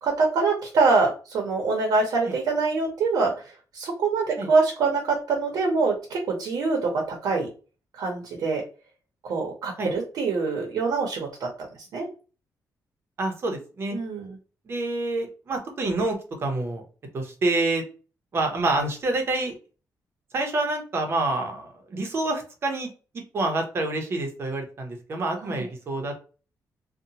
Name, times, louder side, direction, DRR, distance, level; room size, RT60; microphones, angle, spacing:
voice 1, 0.0-7.5 7.9-8.6 9.2-11.5 11.9-12.1 13.9-14.4 25.4-25.6, right 4 dB, 75° right, 1 dB, 0.7 m, -24 dB
voice 2, 13.2-14.0 14.7-16.8 17.1-17.8 18.3-19.5 20.3-22.9 23.3-26.2, right 2 dB, 40° right, 3 dB, 0.6 m, -27 dB
2.8 x 2.1 x 2.7 m, 0.36 s
wide cardioid pair, 165°, 7 cm